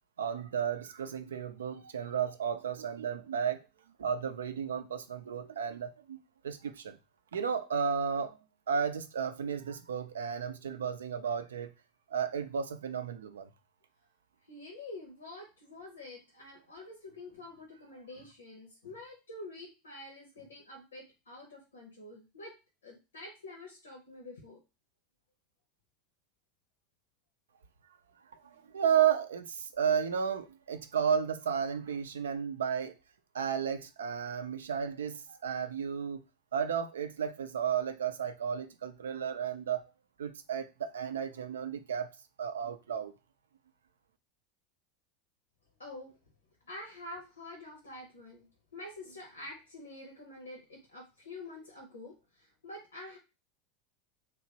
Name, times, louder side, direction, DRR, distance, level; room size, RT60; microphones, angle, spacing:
voice 1, 0.2-3.6 4.0-6.2 6.4-7.0 7.3-8.4 8.7-11.7 12.1-13.5 28.7-32.9 33.3-36.2 36.5-39.8 40.2-42.1 42.4-43.1, right 7 dB, 80° right, 0.4 m, -33 dB
voice 2, 14.5-22.5 22.8-24.6 28.4-28.8 45.8-46.1 46.7-48.5 48.7-53.2, left 2 dB, 85° left, 0.8 m, -47 dB
3.0 x 2.5 x 2.8 m
hypercardioid pair, 85°, 0 cm